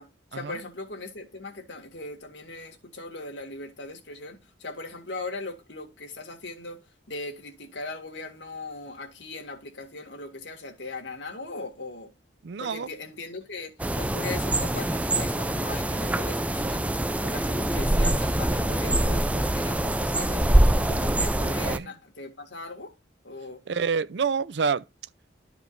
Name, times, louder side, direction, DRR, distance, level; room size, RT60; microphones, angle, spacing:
voice 1, 0.0-12.1 12.6-16.9 17.2-20.5 20.8-22.9 23.2-23.6, left 2 dB, 75° left, 2.0 m, -39 dB
voice 2, 12.4-12.9 21.6-21.9 23.7-24.8, right 5 dB, 70° right, 0.5 m, -27 dB
sound 1, 13.8-21.8, right 1 dB, 10° right, 0.4 m, -24 dB
13.0 x 4.9 x 2.5 m
head